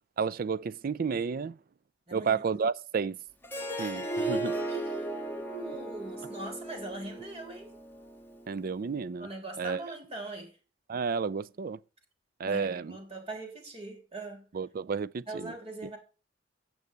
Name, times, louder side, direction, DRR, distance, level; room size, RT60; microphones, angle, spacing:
voice 1, 0.2-1.6 2.1-3.2 3.8-4.5 8.5-9.3 9.6-9.8 10.9-11.8 12.4-12.9 14.5-15.5, right 5 dB, 50° right, 0.4 m, -31 dB
voice 2, 2.1-2.6 3.6-7.7 9.2-10.5 12.5-14.4 15.3-16.0, right 2 dB, 35° right, 3.4 m, -41 dB
Harp, 3.4-8.6, right 1 dB, 10° left, 1.5 m, -36 dB
9.4 x 6.2 x 6.8 m
head